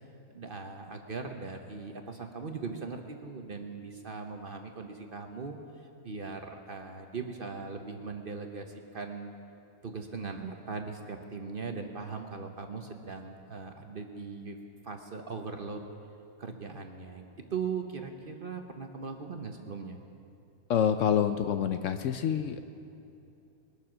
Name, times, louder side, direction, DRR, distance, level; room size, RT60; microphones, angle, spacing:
voice 1, 0.3-9.3 9.8-14.6 14.8-15.8 16.4-20.0, right 5 dB, 45° right, 4 dB, 0.8 m, -39 dB
voice 2, 20.7-22.6, left 8 dB, 70° left, 9 dB, 0.8 m, -27 dB
22.0 x 7.4 x 6.1 m, 2.7 s
omnidirectional pair, 1.6 m